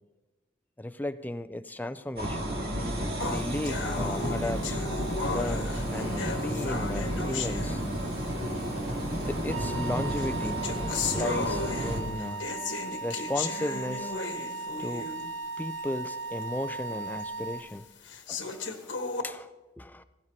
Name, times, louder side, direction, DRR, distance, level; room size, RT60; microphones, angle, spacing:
voice 1, 0.8-4.8 5.3-7.8 9.2-10.8 11.1-12.5 13.0-14.1 14.8-15.1 15.6-17.9 18.3-18.9 19.2-19.5 19.8-20.0, left 1 dB, 10° left, 13 dB, 0.4 m, -35 dB
sound 1, 2.2-12.0, right 1 dB, 55° right, 2.7 m, -32 dB
sound 2, 3.2-8.3 9.2-9.3 10.1-15.4 15.8-15.9 16.4-16.5 17.2-17.3 18.0-19.2, left 4 dB, 80° left, 1.2 m, -35 dB
Wind instrument woodwind instrument, 9.5-17.7, right 4 dB, 80° right, 1.0 m, -37 dB
17.0 x 16.5 x 2.8 m, 1.1 s
head